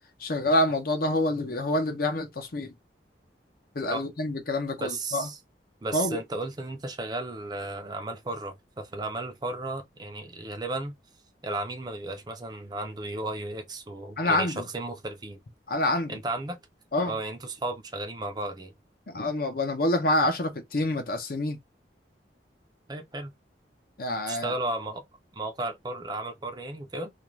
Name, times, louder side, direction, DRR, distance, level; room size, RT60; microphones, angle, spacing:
voice 1, 0.2-2.7 3.7-5.3 5.9-6.2 14.2-14.6 15.7-16.2 16.9-17.2 19.1-21.6 24.0-24.5, left 1 dB, 55° left, 0.7 m, -27 dB
voice 2, 4.8-5.4 5.8-10.9 11.4-15.4 16.1-16.6 17.0-18.7 22.9-23.3 24.3-25.0 25.3-27.1, right 2 dB, 25° right, 0.5 m, -34 dB
2.4 x 2.2 x 3.0 m
head